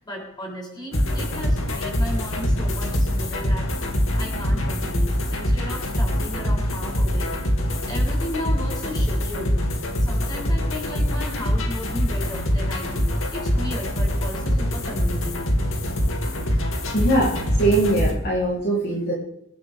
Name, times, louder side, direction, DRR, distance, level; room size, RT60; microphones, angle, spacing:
voice 1, 0.0-3.7 4.2-7.3 7.9-9.5 10.0-15.4, left 1 dB, 20° left, -4 dB, 7.8 m, -35 dB
sound 1, 0.9-18.1, equal, 70° left, 2.7 m, -24 dB
voice 2, 16.9-19.1, right 1 dB, 50° left, -5 dB, 3.9 m, -21 dB
27.5 x 12.0 x 3.7 m, 0.81 s
head